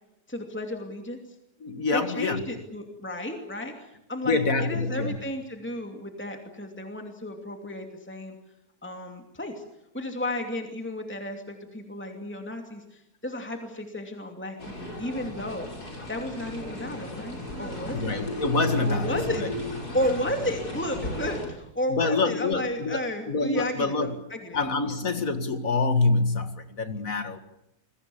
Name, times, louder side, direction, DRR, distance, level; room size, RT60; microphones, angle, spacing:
voice 1, 0.3-1.2 1.9-8.3 8.8-9.6 9.9-15.7 16.1-18.1 18.9-19.4 19.7-24.6, left 1 dB, 5° left, 3 dB, 2.6 m, -33 dB
voice 2, 1.6-2.4 4.3-5.2 17.9-19.5 21.9-24.2 24.5-27.4, left 3 dB, 60° left, 8 dB, 2.3 m, -26 dB
sound 1, 14.6-21.5, left 1 dB, 85° left, 5.9 m, -35 dB
27.5 x 22.5 x 7.1 m, 0.84 s
omnidirectional pair, 1.6 m